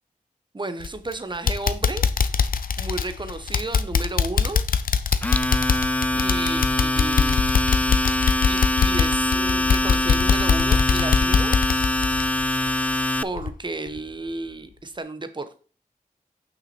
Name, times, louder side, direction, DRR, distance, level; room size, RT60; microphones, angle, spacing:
voice 1, 0.5-2.0 2.8-4.6 6.1-7.5 8.4-11.6 13.2-15.6, right 2 dB, 35° right, 10 dB, 1.0 m, -33 dB
sound 1, 0.8-1.1 1.5-13.0 13.4-13.5 14.0-14.1, left 6 dB, 80° left, 0.6 m, -22 dB
Domestic sounds home sounds, 5.1-13.2, left 1 dB, 10° left, 0.3 m, -23 dB
6.4 x 5.9 x 4.4 m, 0.38 s
wide cardioid pair, 75°, 14 cm